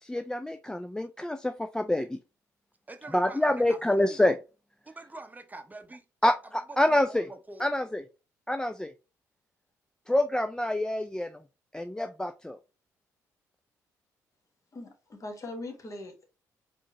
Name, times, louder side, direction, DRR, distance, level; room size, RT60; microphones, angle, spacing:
voice 1, 0.0-2.2 3.1-4.4 6.2-6.3 6.8-7.3 7.6-8.0 8.5-8.9 10.1-11.3 11.7-12.6, left 1 dB, 10° left, 0.3 m, -26 dB
voice 2, 2.9-4.2 4.8-6.3 6.9-7.6, right 2 dB, 20° right, 0.8 m, -45 dB
voice 3, 14.7-16.3, left 2 dB, 40° left, 1.4 m, -41 dB
4.3 x 3.0 x 2.9 m
hypercardioid pair, 45°, 9 cm